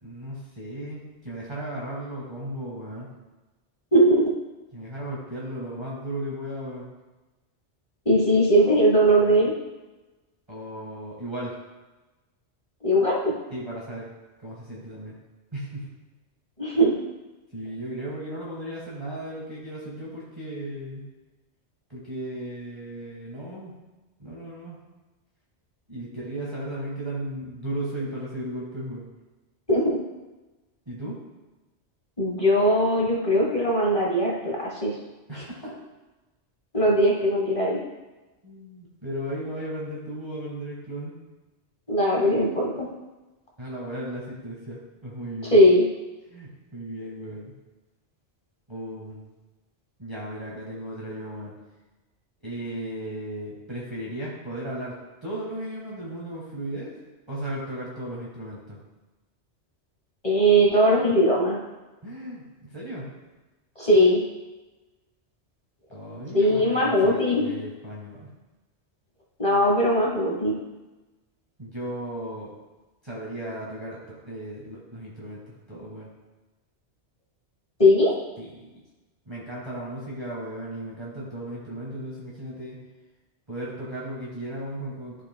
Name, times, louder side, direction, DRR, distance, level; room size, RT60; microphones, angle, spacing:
voice 1, 0.0-3.1 4.7-6.9 10.5-11.6 13.5-14.1 14.4-15.1 15.5-15.9 17.5-21.1 21.9-23.7 24.2-24.8 25.9-29.0 30.8-31.2 35.3-35.7 38.4-41.1 43.6-45.6 46.3-47.5 48.7-49.2 50.0-51.5 52.4-56.9 57.3-58.8 62.0-63.1 65.9-68.3 71.6-72.5 73.0-76.1 78.4-78.8 79.3-82.8 83.5-85.2, right 1 dB, 25° right, -6 dB, 1.5 m, -35 dB
voice 2, 3.9-4.2 8.0-9.5 12.8-13.4 16.6-16.9 29.7-30.0 32.2-34.9 36.7-37.8 41.9-42.9 45.5-45.8 60.2-61.6 63.8-64.2 66.3-67.5 69.4-70.6 77.8-78.1, equal, 30° left, -4 dB, 1.3 m, -20 dB
12.5 x 5.0 x 2.2 m, 1.1 s
omnidirectional pair, 1.2 m